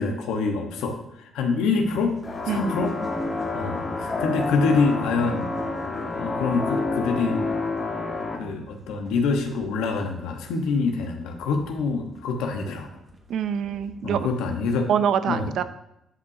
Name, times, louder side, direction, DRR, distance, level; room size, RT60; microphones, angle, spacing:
voice 1, 0.0-2.2 2.4-2.9 3.5-5.5 6.1-7.4 8.3-12.9 14.0-14.9 15.3-15.5, left 4 dB, 90° left, 4 dB, 1.0 m, -25 dB
sound 1, 1.7-14.5, right 1 dB, 40° right, 1.5 m, -47 dB
sound 2, 2.2-8.4, left 3 dB, 25° left, 1.3 m, -29 dB
voice 2, 2.5-2.8 13.3-14.3 14.9-15.6, right 8 dB, 70° right, 12 dB, 0.5 m, -25 dB
10.0 x 5.6 x 2.7 m, 0.87 s
cardioid pair, 80°, 0 cm